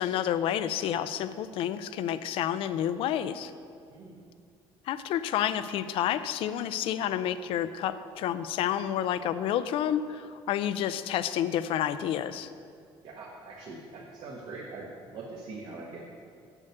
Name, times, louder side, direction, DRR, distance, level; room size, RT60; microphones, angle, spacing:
voice 1, 0.0-3.5 4.9-12.5, left 10 dB, 65° left, 13 dB, 0.4 m, -29 dB
voice 2, 3.9-4.2 13.0-16.1, right 3 dB, 55° right, -3 dB, 1.2 m, -43 dB
8.0 x 7.2 x 6.6 m, 2.3 s
cardioid pair, 170°, 10 cm